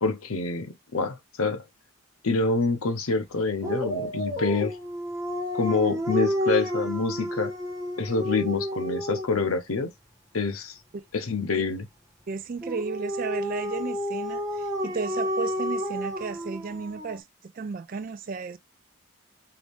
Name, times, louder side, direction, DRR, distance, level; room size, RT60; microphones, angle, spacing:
voice 1, 0.0-1.6 2.2-4.7 5.5-7.5 8.0-9.9 10.3-10.8 11.1-11.9, left 4 dB, 80° left, 0.8 m, -26 dB
Dog, 3.6-9.4 12.6-17.2, equal, 15° right, 1.2 m, -30 dB
voice 2, 12.3-17.2 17.5-18.6, right 4 dB, 40° right, 0.3 m, -33 dB
4.9 x 2.6 x 3.4 m
head